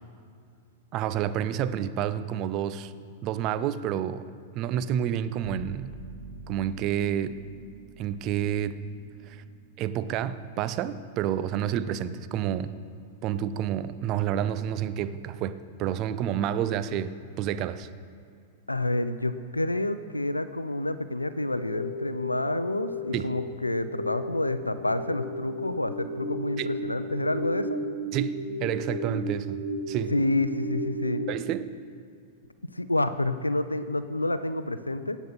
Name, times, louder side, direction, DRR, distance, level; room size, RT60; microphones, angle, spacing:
voice 1, 0.9-2.9 3.2-6.0 6.5-7.5 8.0-8.8 9.3-9.4 9.8-12.7 13.2-17.9 23.1-23.3 26.6-26.7 28.1-29.6 29.9-30.1 31.3-31.7, right 10 dB, 40° right, 0.5 m, -29 dB
Bowed string instrument, 5.4-11.9, right 5 dB, 55° right, 2.2 m, -46 dB
voice 2, 18.7-27.8 30.1-31.2 32.7-35.2, left 2 dB, 90° left, 0.5 m, -28 dB
sound 1, 21.3-31.3, equal, 85° right, 2.2 m, -34 dB
17.0 x 8.1 x 4.2 m
figure-of-eight pair, 100°, 0 cm